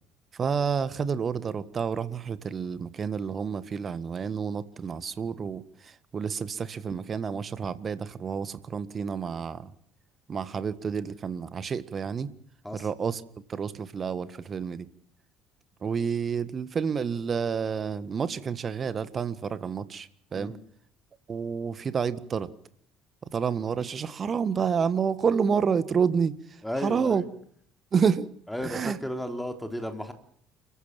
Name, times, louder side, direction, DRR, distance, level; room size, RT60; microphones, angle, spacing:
voice 1, 0.4-5.6 6.1-9.7 10.3-12.3 12.7-13.2 13.5-14.9 15.8-20.5 21.3-22.5 23.3-26.4 26.8-27.2 27.9-28.3 28.6-29.0, right 6 dB, 35° right, 15 dB, 1.6 m, -29 dB
voice 2, 26.6-27.3 28.5-30.1, left 1 dB, 5° left, 5 dB, 3.6 m, -34 dB
30.0 x 14.5 x 7.5 m, 0.66 s
figure-of-eight pair, 55°, 0 cm